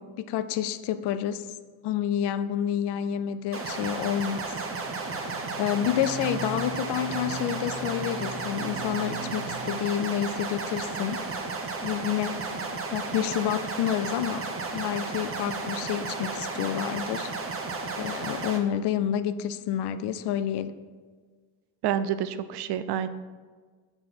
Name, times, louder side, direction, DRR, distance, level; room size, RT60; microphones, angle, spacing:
voice 1, 0.0-1.5 1.8-4.4 5.6-11.2 11.8-12.5 12.9-14.5 14.7-17.3 18.0-20.7, left 10 dB, 65° left, 12 dB, 0.5 m, -29 dB
sound 1, 2.6-9.6, right 3 dB, 85° right, 1.0 m, -42 dB
sound 2, 3.5-18.6, right 3 dB, 30° right, 0.8 m, -33 dB
voice 2, 21.8-23.1, right 9 dB, 60° right, 12 dB, 0.5 m, -28 dB
6.3 x 4.4 x 4.3 m, 1.5 s
cardioid pair, 95°, 44 cm